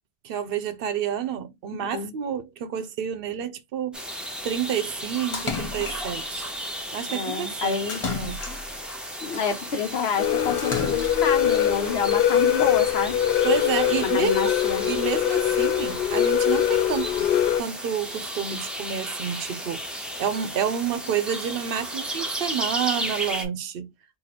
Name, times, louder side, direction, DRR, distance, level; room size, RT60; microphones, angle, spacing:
voice 1, 0.2-4.0 4.4-6.5 6.9-7.8 8.1-8.4 13.4-14.6 14.8-17.3 17.6-23.9, right 8 dB, 65° right, 0.7 m, -29 dB
voice 2, 1.7-2.1 7.1-8.0 9.2-13.2 14.1-14.9, left 6 dB, 85° left, 1.1 m, -28 dB
sound 1, 3.9-23.4, equal, ahead, 0.6 m, -34 dB
Splash splatter, 5.3-6.3 7.9-9.0 10.6-11.4, left 4 dB, 35° left, 0.7 m, -32 dB
sound 2, 10.2-17.6, left 10 dB, 65° left, 0.7 m, -23 dB
2.8 x 2.7 x 4.0 m
omnidirectional pair, 1.0 m